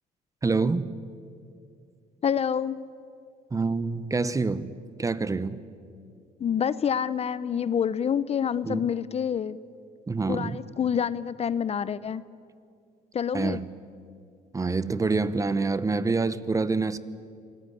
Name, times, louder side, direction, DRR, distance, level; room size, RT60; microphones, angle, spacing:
voice 1, 0.4-0.9 3.5-4.7 5.0-5.6 8.6-8.9 10.1-10.6 13.3-13.6 14.5-17.0, right 3 dB, 20° right, 16 dB, 0.9 m, -26 dB
voice 2, 2.2-2.8 6.4-9.6 10.3-12.2 13.1-13.6, left 8 dB, 40° left, 17 dB, 0.6 m, -27 dB
26.5 x 18.0 x 9.8 m, 2.4 s
cardioid pair, 110°, 17 cm